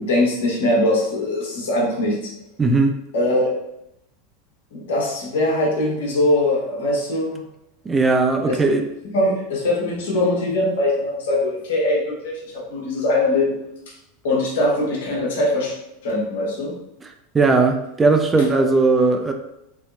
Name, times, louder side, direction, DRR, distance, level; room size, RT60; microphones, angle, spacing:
voice 1, 0.0-2.2 3.1-3.5 4.7-7.4 8.5-8.6 9.1-13.5 13.9-14.0 14.2-15.8 16.0-16.7, left 1 dB, 65° left, -3 dB, 1.0 m, -21 dB
voice 2, 2.6-2.9 7.9-8.8 17.3-19.3, right 3 dB, 15° right, 5 dB, 0.3 m, -17 dB
3.1 x 2.7 x 2.5 m, 0.84 s
figure-of-eight pair, 85°, 0 cm